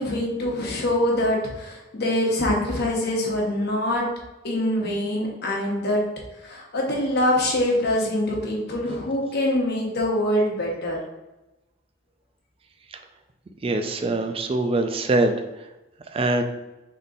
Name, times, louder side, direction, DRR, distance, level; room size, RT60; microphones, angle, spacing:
voice 1, 0.0-4.0 4.4-6.0 6.4-11.0, left 1 dB, 55° left, -1 dB, 0.9 m, -24 dB
voice 2, 13.6-15.4 16.1-16.4, right 2 dB, 30° right, 6 dB, 0.4 m, -23 dB
3.8 x 3.7 x 2.6 m, 1.0 s
head